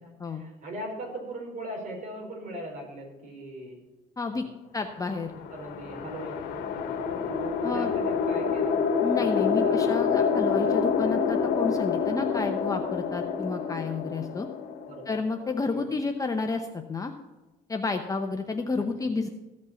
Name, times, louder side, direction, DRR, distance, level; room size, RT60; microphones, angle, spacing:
voice 1, 0.0-3.8 4.3-4.5 5.5-10.1 14.9-15.1 15.7-15.9, right 1 dB, 50° right, 0 dB, 4.5 m, -40 dB
voice 2, 4.7-5.3 7.6-7.9 9.0-14.5 15.1-17.1 17.7-19.3, left 3 dB, 20° left, 4 dB, 0.8 m, -30 dB
sound 1, 5.2-15.6, left 6 dB, 80° left, 1.2 m, -27 dB
15.0 x 5.3 x 7.0 m, 1.1 s
cardioid pair, 110°, 17 cm